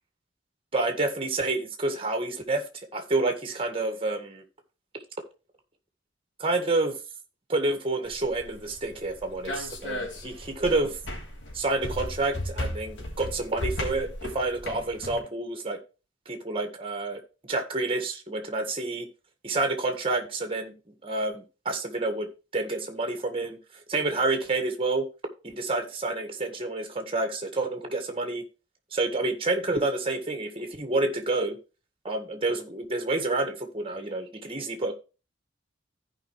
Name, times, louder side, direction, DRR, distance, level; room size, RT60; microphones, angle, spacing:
voice 1, 0.7-2.7 2.9-4.4 6.4-7.0 7.5-11.0 11.5-15.8 16.3-17.2 17.5-19.1 19.4-20.7 21.0-23.6 23.9-25.1 25.4-28.4 28.9-31.6 32.0-34.9, right 2 dB, 30° right, 5 dB, 1.8 m, -28 dB
sound 1, 8.0-15.2, left 1 dB, 75° left, 3.1 m, -36 dB
15.5 x 5.2 x 3.3 m, 0.32 s
head